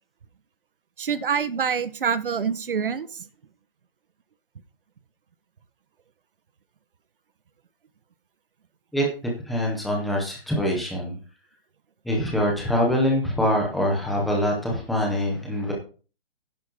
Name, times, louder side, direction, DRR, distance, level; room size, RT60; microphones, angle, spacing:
voice 1, 1.0-3.2, right 6 dB, 65° right, 13 dB, 1.4 m, -26 dB
voice 2, 9.5-11.2 12.1-15.7, equal, ahead, -2 dB, 0.6 m, -24 dB
11.0 x 10.5 x 3.8 m, 0.37 s
hypercardioid pair, 170°, 29 cm